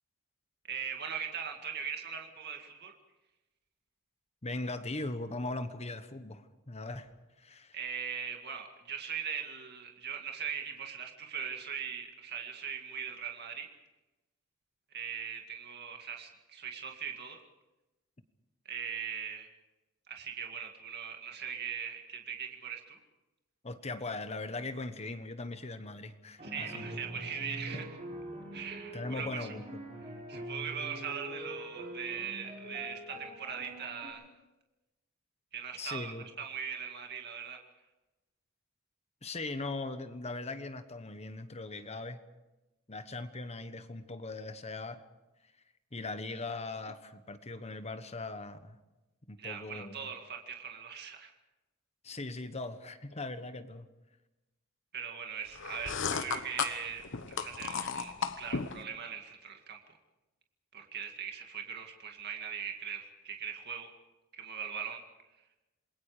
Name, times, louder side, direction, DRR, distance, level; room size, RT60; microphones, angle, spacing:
voice 1, 0.7-2.9 7.7-13.7 14.9-17.4 18.7-19.5 20.1-23.0 26.4-27.8 28.5-29.5 30.3-34.3 35.5-37.6 49.4-51.3 54.9-59.8 60.7-63.9 64.3-65.0, right 7 dB, 50° right, 3 dB, 2.1 m, -40 dB
voice 2, 4.4-7.1 7.4-7.8 23.6-27.0 27.7-27.8 28.9-29.6 30.3-30.5 35.8-36.2 39.2-42.2 42.9-45.0 45.9-48.8 49.3-49.9 52.0-53.9, left 2 dB, 30° left, 10 dB, 1.2 m, -39 dB
sound 1, 26.4-34.1, right 1 dB, 30° right, 7.3 m, -44 dB
sound 2, 55.5-58.8, left 6 dB, 60° left, 1.1 m, -35 dB
28.0 x 21.0 x 5.0 m, 1.0 s
head